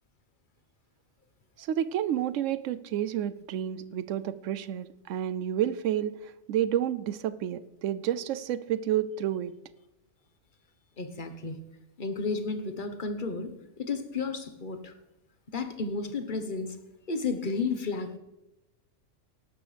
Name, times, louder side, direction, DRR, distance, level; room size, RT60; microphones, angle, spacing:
voice 1, 1.6-9.5, right 10 dB, 80° right, 15 dB, 1.0 m, -30 dB
voice 2, 11.0-11.6 12.0-13.5 13.8-14.9 15.5-16.8 17.1-18.2, left 4 dB, 40° left, 8 dB, 1.3 m, -32 dB
18.0 x 12.5 x 3.4 m, 0.94 s
omnidirectional pair, 1.3 m